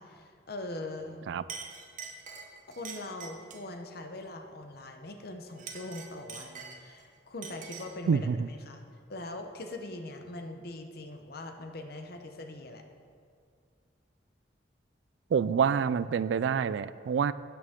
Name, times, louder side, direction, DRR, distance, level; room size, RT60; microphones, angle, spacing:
voice 1, 0.0-1.2 2.7-8.3 8.7-8.8 9.1-12.8, left 2 dB, 60° left, 5 dB, 0.9 m, -41 dB
Chink clink, 1.0-1.2 1.5-3.7 5.5-7.0 7.4-8.0, right 5 dB, 45° right, 1.0 m, -44 dB
voice 2, 8.1-8.5 15.3-17.3, right 6 dB, 75° right, 16 dB, 0.3 m, -27 dB
12.5 x 8.9 x 3.7 m, 2.2 s
head